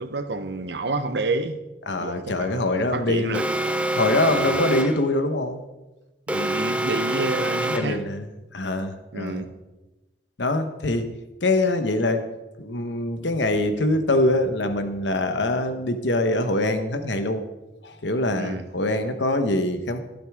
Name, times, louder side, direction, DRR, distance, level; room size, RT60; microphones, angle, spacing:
voice 1, 0.0-1.6 2.0-3.4 4.3-4.6 6.3-8.0 9.1-9.5 18.3-18.7, right 2 dB, 70° right, 10 dB, 0.9 m, -29 dB
voice 2, 1.9-3.4 3.9-5.6 7.7-8.3 8.5-9.4 10.4-11.1 11.4-12.3 12.6-17.4 17.8-20.0, left 2 dB, 85° left, 8 dB, 1.1 m, -24 dB
Alarm, 3.3-5.1 6.3-8.1, right 1 dB, 5° right, 0.6 m, -26 dB
13.0 x 12.0 x 3.6 m, 1.1 s
head